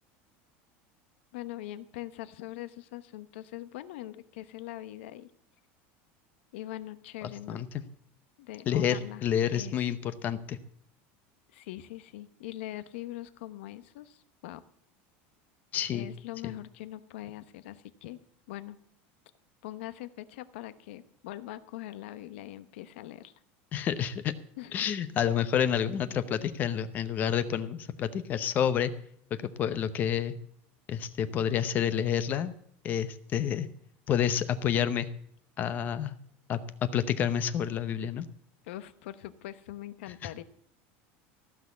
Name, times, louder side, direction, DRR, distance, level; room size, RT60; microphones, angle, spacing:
voice 1, 1.3-5.3 6.5-7.6 8.4-9.2 9.5-9.7 11.5-14.6 15.9-18.2 18.5-18.8 19.6-23.3 24.6-24.7 38.7-40.4, left 14 dB, 80° left, 13 dB, 1.0 m, -42 dB
voice 2, 7.2-7.8 8.7-10.6 15.7-16.1 16.4-16.5 23.7-24.3 24.7-28.9 29.6-30.3 30.9-32.5 32.8-33.7 34.1-35.1 35.6-36.2 36.5-38.3 40.2-40.3, left 9 dB, 30° left, 13 dB, 0.8 m, -29 dB
15.0 x 6.3 x 8.2 m, 0.67 s
supercardioid pair, 165°, 6 cm